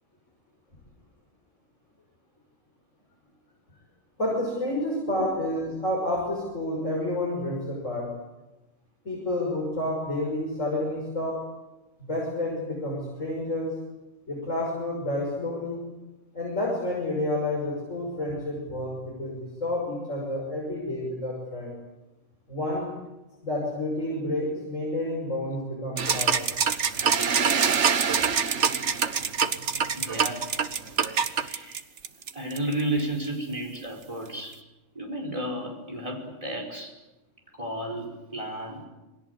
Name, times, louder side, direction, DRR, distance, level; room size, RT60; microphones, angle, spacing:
voice 1, 4.2-8.1 9.0-11.4 12.1-13.8 14.3-15.8 16.3-21.7 22.5-22.9 23.4-26.5, left 1 dB, 85° left, -3 dB, 6.5 m, -29 dB
sound 1, 26.0-32.8, right 6 dB, 70° right, 1.5 m, -25 dB
voice 2, 30.0-30.5 31.3-31.8 32.3-34.6 35.0-36.9 37.6-38.9, right 1 dB, 25° right, 0 dB, 5.4 m, -32 dB
28.5 x 21.0 x 8.3 m, 1.0 s
omnidirectional pair, 1.3 m